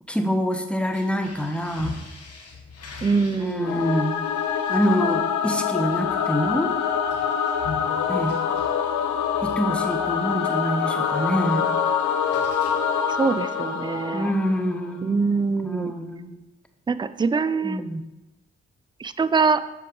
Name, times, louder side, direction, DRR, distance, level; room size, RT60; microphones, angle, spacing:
voice 1, 0.1-1.9 3.4-4.2 4.7-6.7 8.1-8.4 9.4-11.8 14.1-15.2 15.6-16.4 17.6-18.0, equal, 5° left, 6 dB, 0.8 m, -26 dB
sound 1, 0.8-10.7 11.1-11.4 11.6-13.2, left 3 dB, 55° left, 1.2 m, -42 dB
voice 2, 3.0-3.8 13.1-14.3 15.0-15.9 16.9-17.8 19.0-19.6, right 4 dB, 15° right, 13 dB, 0.3 m, -23 dB
Singing / Musical instrument, 3.6-14.9, left 7 dB, 70° left, 0.7 m, -25 dB
6.5 x 4.7 x 3.7 m, 1.0 s
supercardioid pair, 50°, 30 cm